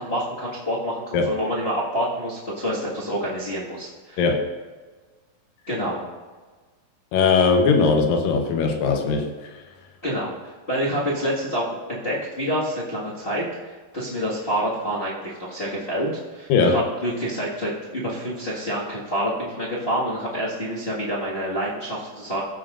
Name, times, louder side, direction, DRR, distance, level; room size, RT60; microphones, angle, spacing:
voice 1, 0.0-4.2 5.7-6.0 10.0-22.4, equal, 30° left, -8 dB, 1.0 m, -27 dB
voice 2, 7.1-9.3 16.5-16.8, left 4 dB, 85° left, 3 dB, 2.7 m, -19 dB
16.0 x 7.3 x 2.5 m, 1.4 s
omnidirectional pair, 3.9 m